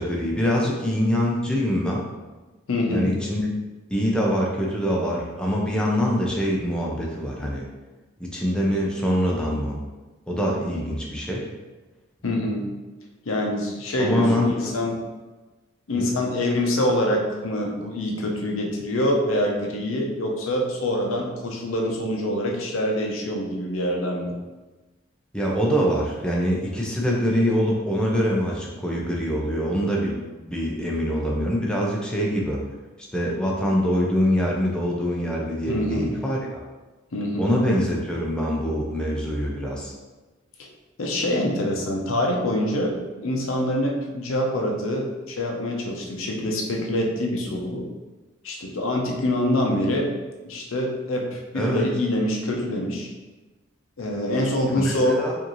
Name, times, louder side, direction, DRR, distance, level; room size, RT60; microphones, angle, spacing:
voice 1, 0.0-2.1 2.9-3.4 3.9-7.7 8.2-9.8 10.3-11.5 14.0-14.7 16.0-16.1 25.3-30.2 30.5-32.6 33.0-36.6 37.4-39.9 51.5-51.9 54.8-55.4, equal, 5° left, -3 dB, 0.5 m, -24 dB
voice 2, 2.7-3.1 12.2-12.7 13.3-15.0 15.9-24.3 35.7-36.1 37.1-37.5 41.0-47.9 48.4-50.1 50.4-53.1 54.0-55.2, left 1 dB, 85° left, 0 dB, 0.7 m, -25 dB
4.8 x 2.7 x 3.0 m, 1.2 s
head